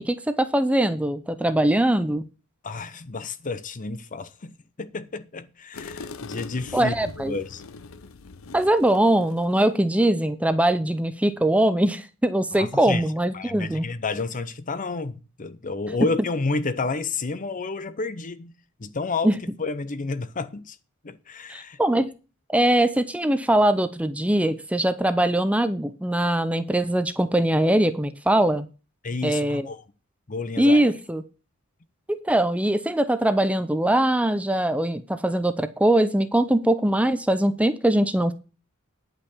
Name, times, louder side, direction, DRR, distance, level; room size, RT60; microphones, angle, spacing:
voice 1, 0.0-2.2 6.7-7.4 8.5-13.9 19.2-19.3 21.5-22.1 22.5-28.7 29.2-29.7 30.6-31.2 32.1-38.3, right 1 dB, 5° right, 0.6 m, -22 dB
voice 2, 2.6-7.6 12.6-13.0 13.3-18.5 18.8-19.3 19.6-20.8 21.0-21.8 29.0-29.8 30.3-30.8, left 3 dB, 40° left, 0.7 m, -30 dB
sound 1, 5.7-9.8, left 4 dB, 75° left, 0.7 m, -41 dB
10.0 x 5.7 x 7.0 m
head